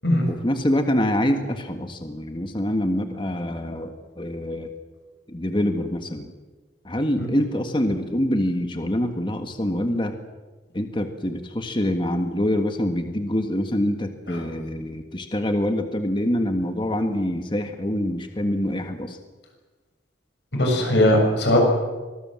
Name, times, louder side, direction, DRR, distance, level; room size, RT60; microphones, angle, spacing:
voice 1, 0.3-4.7 5.3-6.3 6.8-10.2 10.7-19.2, left 1 dB, 25° left, 6 dB, 1.7 m, -25 dB
voice 2, 20.5-21.6, left 1 dB, 70° left, 1 dB, 6.9 m, -19 dB
25.0 x 19.5 x 7.7 m, 1.3 s
head